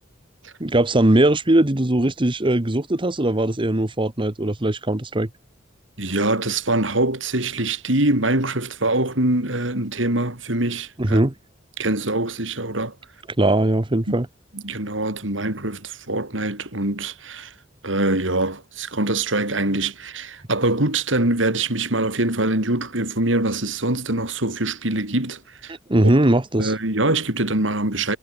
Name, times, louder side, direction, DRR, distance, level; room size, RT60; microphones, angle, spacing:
voice 1, 0.6-5.3 11.0-11.3 13.4-14.3 25.7-26.7, right 1 dB, 25° right, 1.2 m, -20 dB
voice 2, 6.0-11.2 11.8-13.0 14.1-14.2 14.5-17.5 17.8-25.7 26.0-26.1 26.6-28.2, right 2 dB, 80° right, 5.4 m, -23 dB
head